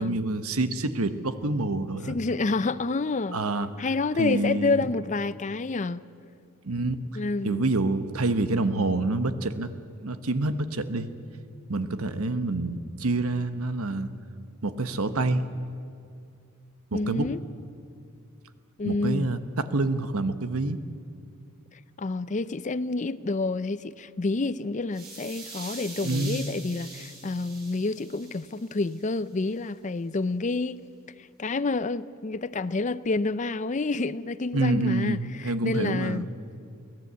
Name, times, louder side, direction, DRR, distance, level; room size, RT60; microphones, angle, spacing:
voice 1, 0.0-2.2 3.3-3.9 4.2-4.9 6.6-7.0 7.4-9.7 10.0-11.1 11.7-14.1 14.6-15.4 16.9-17.3 18.8-20.8 26.0-26.4 34.5-36.3, right 2 dB, 75° right, 1.2 m, -27 dB
voice 2, 2.1-3.4 3.8-6.0 7.1-7.7 16.9-17.4 18.8-19.3 22.0-30.8 31.4-36.3, left 3 dB, 35° left, 0.5 m, -28 dB
sound 1, 24.9-29.0, right 3 dB, 45° right, 6.5 m, -43 dB
24.0 x 17.0 x 8.2 m
head